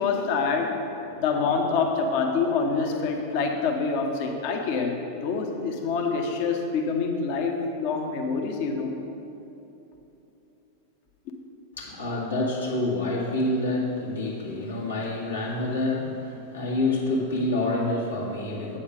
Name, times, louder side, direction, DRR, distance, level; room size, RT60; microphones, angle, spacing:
voice 1, 0.0-5.0 5.2-9.0, left 4 dB, 45° left, 3 dB, 0.9 m, -26 dB
voice 2, 11.7-18.8, left 2 dB, 70° left, -3 dB, 1.7 m, -27 dB
8.6 x 7.1 x 5.0 m, 3.0 s
figure-of-eight pair, 90°, 0 cm